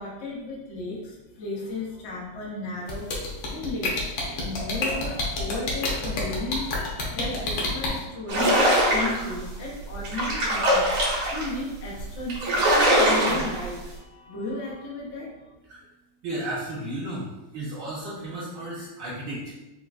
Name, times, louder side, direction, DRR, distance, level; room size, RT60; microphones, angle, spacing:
voice 1, 0.0-15.5, left 2 dB, 85° left, -4 dB, 0.6 m, -35 dB
sound 1, 2.9-7.9, left 2 dB, 70° left, 1.5 m, -27 dB
sound 2, 8.3-9.3 9.9-11.5 12.0-12.1 12.3-13.7, equal, 80° right, 2.0 m, -22 dB
voice 2, 16.2-17.3 17.5-19.5, right 1 dB, 65° right, -7 dB, 1.3 m, -33 dB
5.1 x 2.5 x 2.4 m, 1.0 s
omnidirectional pair, 2.4 m